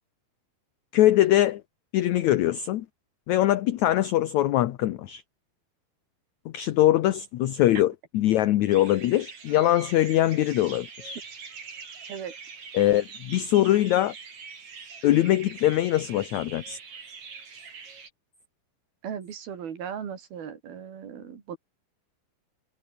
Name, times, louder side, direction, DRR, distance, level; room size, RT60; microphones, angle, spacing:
voice 1, 0.9-1.6 1.9-2.9 3.3-5.2 6.5-11.2 12.7-14.1 15.0-16.8, left 14 dB, 70° left, 1.8 m, -22 dB
sound 1, 8.7-18.1, right 5 dB, 50° right, 5.2 m, -44 dB
voice 2, 19.0-21.6, right 8 dB, 75° right, 5.1 m, -37 dB
omnidirectional pair, 4.3 m